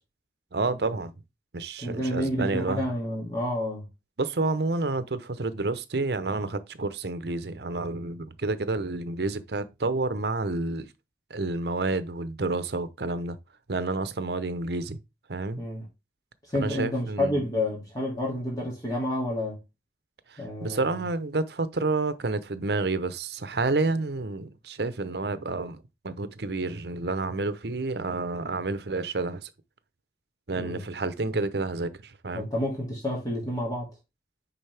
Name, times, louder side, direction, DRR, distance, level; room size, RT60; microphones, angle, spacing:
voice 1, 0.5-1.1 1.5-2.9 4.2-10.9 11.3-13.4 13.7-15.0 15.3-15.6 16.5-17.5 20.3-29.5 30.5-32.5, right 3 dB, 65° right, 0.8 m, -29 dB
voice 2, 1.8-3.9 15.6-15.9 16.4-19.6 20.4-21.0 30.5-30.8 32.3-33.9, left 1 dB, 20° left, 2.4 m, -29 dB
10.0 x 4.1 x 3.4 m
head